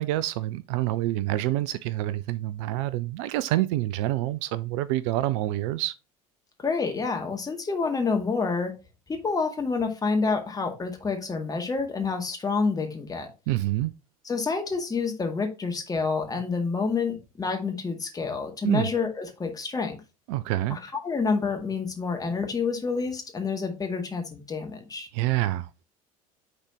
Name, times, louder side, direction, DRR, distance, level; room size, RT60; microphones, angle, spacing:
voice 1, 0.0-5.9 13.5-13.9 18.6-18.9 20.3-20.8 25.1-25.7, right 15 dB, 55° right, 0.4 m, -27 dB
voice 2, 6.6-8.7 9.1-13.3 14.2-20.0 20.7-25.1, left 4 dB, 20° left, 2.0 m, -28 dB
9.7 x 4.0 x 2.9 m
figure-of-eight pair, 70°, 19 cm